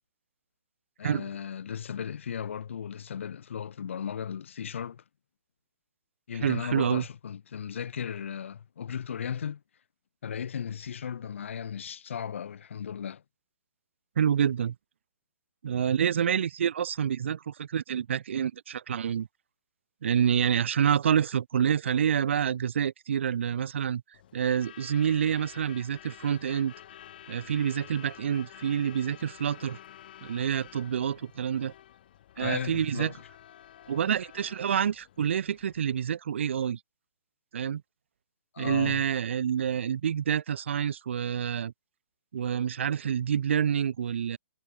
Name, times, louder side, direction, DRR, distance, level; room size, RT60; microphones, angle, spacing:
voice 1, 1.0-5.0 6.3-9.6 10.2-13.2 32.4-33.2 38.5-39.0, left 8 dB, 60° left, 1.2 m, -36 dB
voice 2, 6.4-7.0 14.2-14.7 15.6-19.3 20.0-24.0 24.3-26.7 27.3-29.8 30.2-31.7 32.4-33.1 33.9-36.8 37.5-37.8 38.6-41.7 42.3-44.4, right 8 dB, 55° right, 0.7 m, -27 dB
Truck / Alarm, 24.1-36.1, left 11 dB, 40° left, 6.1 m, -50 dB
hypercardioid pair, 170°, 8 cm